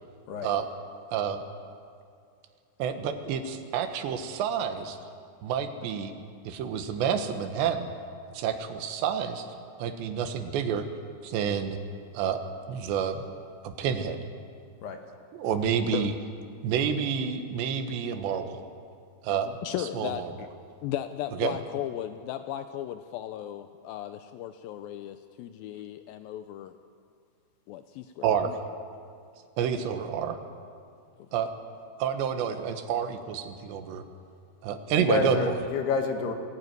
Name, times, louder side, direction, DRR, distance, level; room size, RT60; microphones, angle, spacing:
voice 1, 1.1-1.4 2.8-5.0 5.4-6.1 6.5-7.9 8.3-9.5 9.8-10.9 11.2-11.8 12.1-12.4 12.7-13.2 13.6-14.2 15.4-16.1 16.6-18.6 19.2-19.5 20.0-20.3 21.4-21.6 28.2-28.5 29.6-30.4 31.3-31.5 32.0-34.0 34.6-35.5, right 8 dB, 85° right, 7 dB, 3.6 m, -29 dB
voice 2, 19.6-20.5 20.8-26.7 27.7-28.6, left 12 dB, 90° left, 9 dB, 2.0 m, -36 dB
voice 3, 35.0-36.3, left 5 dB, 70° left, 5 dB, 3.6 m, -29 dB
23.0 x 17.0 x 9.4 m, 2.4 s
omnidirectional pair, 5.0 m